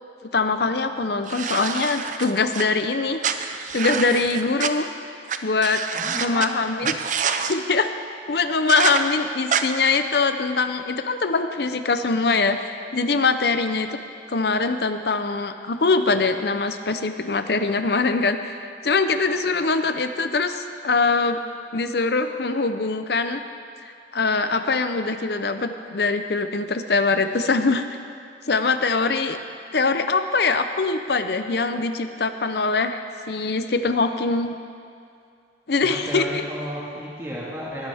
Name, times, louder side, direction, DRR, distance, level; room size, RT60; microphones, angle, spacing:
voice 1, 0.3-3.2 3.7-4.9 5.4-5.8 6.2-6.9 7.3-7.9 8.3-13.9 14.3-21.4 21.7-23.4 23.8-27.9 28.5-29.4 29.7-34.6 35.7-36.4, left 3 dB, 60° left, 9 dB, 0.7 m, -23 dB
sound 1, 1.3-2.6 3.2-4.7 5.3-5.4 5.6-6.5 6.8-7.5 8.7-9.0 9.5-9.6, right 7 dB, 45° right, 0.6 m, -26 dB
voice 2, 5.9-6.9 35.8-37.9, equal, 15° right, -7 dB, 1.8 m, -33 dB
20.0 x 11.5 x 3.5 m, 2.4 s
head